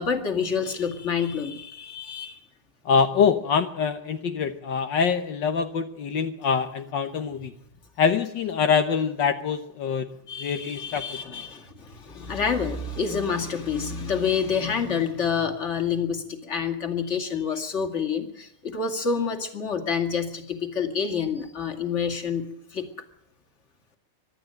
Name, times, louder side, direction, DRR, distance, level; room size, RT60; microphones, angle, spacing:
voice 1, 0.0-2.4 10.3-22.9, left 6 dB, 25° left, 6 dB, 2.0 m, -28 dB
voice 2, 2.8-7.5 8.0-10.1 10.4-11.3, left 6 dB, 70° left, 6 dB, 1.0 m, -24 dB
24.0 x 12.0 x 8.9 m, 0.74 s
omnidirectional pair, 3.4 m